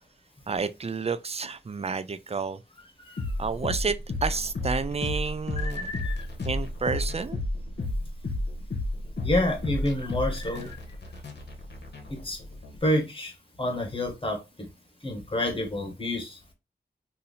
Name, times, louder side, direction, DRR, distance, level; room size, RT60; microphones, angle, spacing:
voice 1, 0.5-2.6 3.4-6.0 6.5-7.4, right 5 dB, 35° right, 0.4 m, -30 dB
sound 1, 3.2-12.8, left 2 dB, 65° left, 1.0 m, -32 dB
voice 2, 5.6-6.2 9.2-10.8 12.1-12.4 12.8-13.3 13.6-14.4 15.0-16.4, left 1 dB, 30° left, 1.5 m, -28 dB
2.7 x 2.7 x 4.0 m
cardioid pair, 40°, 19 cm